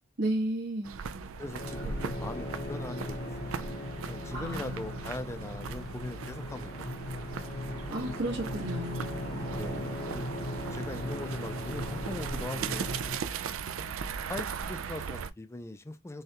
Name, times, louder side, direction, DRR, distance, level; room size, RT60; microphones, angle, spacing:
voice 1, 0.2-0.9 4.3-5.0 7.9-9.2, right 1 dB, 60° right, 1.4 m, -33 dB
sound 1, 0.8-15.3, right 5 dB, 80° right, 0.4 m, -38 dB
voice 2, 1.4-3.7 4.1-7.2 9.5-10.3 10.7-12.9 14.3-16.2, left 2 dB, 15° left, 0.4 m, -41 dB
sound 2, 1.6-13.2, left 2 dB, 50° left, 0.8 m, -39 dB
6.4 x 2.3 x 2.8 m
head